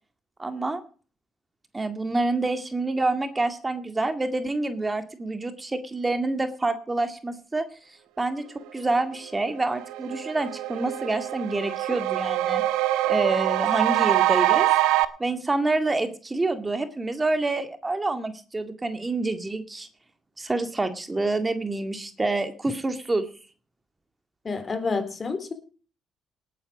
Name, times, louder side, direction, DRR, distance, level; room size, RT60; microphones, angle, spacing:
voice 1, 0.4-0.8 1.7-7.7 8.2-8.4 8.7-12.6 13.1-14.7 15.2-19.9 20.4-23.3, right 2 dB, 25° right, 8 dB, 2.0 m, -27 dB
sound 1, 9.3-9.4 9.7-15.1, right 15 dB, 85° right, 0.9 m, -24 dB
voice 2, 24.4-25.5, left 4 dB, 40° left, 10 dB, 3.7 m, -29 dB
18.5 x 9.4 x 5.0 m, 0.40 s
supercardioid pair, 60°, 0 cm